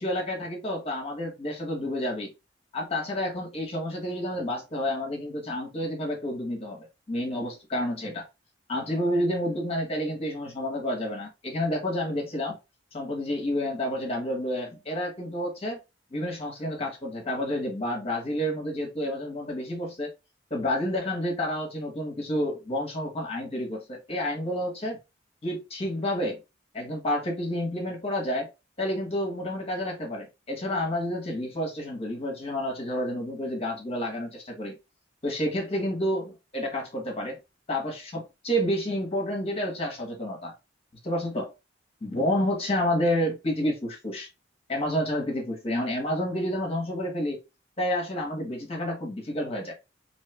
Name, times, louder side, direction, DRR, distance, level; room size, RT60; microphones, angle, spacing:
voice 1, 0.0-2.3 2.7-8.2 8.7-12.6 12.9-15.8 16.1-20.1 20.5-25.0 25.4-26.4 26.7-28.5 28.8-34.8 35.2-37.4 37.7-40.5 41.0-41.5 42.0-44.3 44.7-47.4 47.8-49.7, left 1 dB, 30° left, 0.9 m, -29 dB
2.7 x 2.3 x 3.2 m
head